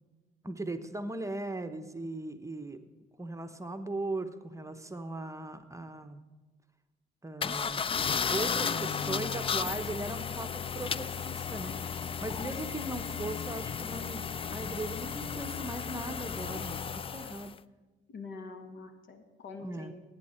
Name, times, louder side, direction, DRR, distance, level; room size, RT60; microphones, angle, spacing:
voice 1, 0.4-2.8 3.2-6.2 7.2-7.9 8.3-14.2 14.5-17.5 19.6-19.9, right 2 dB, 15° right, 8 dB, 0.9 m, -38 dB
sound 1, 7.4-17.5, left 6 dB, 30° left, 0.4 m, -34 dB
voice 2, 9.1-10.3 18.1-19.9, left 4 dB, 70° left, 6 dB, 1.8 m, -46 dB
17.5 x 8.9 x 4.4 m, 1.3 s
cardioid pair, 90°, 20 cm